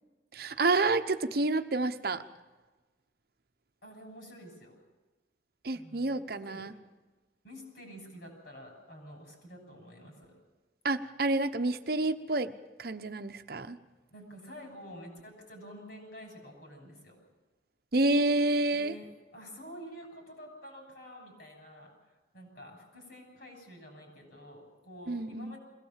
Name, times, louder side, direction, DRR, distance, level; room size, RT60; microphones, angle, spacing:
voice 1, 0.3-2.2 5.6-6.7 10.8-12.5 12.8-13.8 17.9-18.9 25.1-25.6, right 2 dB, 55° right, 9 dB, 0.9 m, -29 dB
voice 2, 3.8-4.8 5.7-6.6 7.4-10.3 14.1-17.2 18.7-19.1 19.3-21.9 22.3-25.6, equal, 60° left, 2 dB, 7.3 m, -49 dB
22.5 x 18.0 x 7.4 m, 1.2 s
head